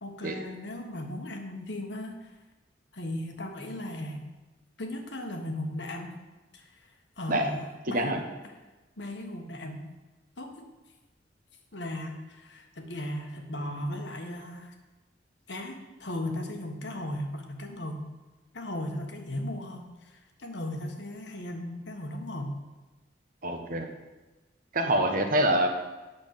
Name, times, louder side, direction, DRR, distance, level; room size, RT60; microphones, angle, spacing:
voice 1, 0.0-2.4 2.9-4.2 4.8-6.2 6.5-6.9 7.2-8.1 8.4-8.5 9.0-9.9 10.4-10.7 11.7-14.7 15.5-18.0 18.5-22.5, left 1 dB, 70° left, 4 dB, 1.4 m, -37 dB
voice 2, 23.4-23.9 24.7-25.7, right 1 dB, 50° right, 4 dB, 1.3 m, -25 dB
8.5 x 6.2 x 7.3 m, 1.1 s
head